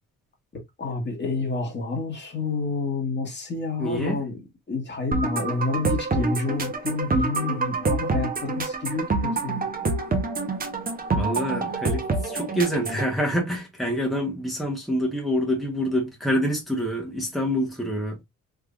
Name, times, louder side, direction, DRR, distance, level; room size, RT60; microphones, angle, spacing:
voice 1, 0.5-4.4 4.7-9.6, left 3 dB, 35° left, 1.6 m, -29 dB
voice 2, 3.8-4.2 11.1-18.2, equal, ahead, 1.1 m, -26 dB
sound 1, 5.1-13.1, right 3 dB, 30° right, 1.0 m, -26 dB
3.6 x 3.2 x 2.4 m
cardioid pair, 90°, 30 cm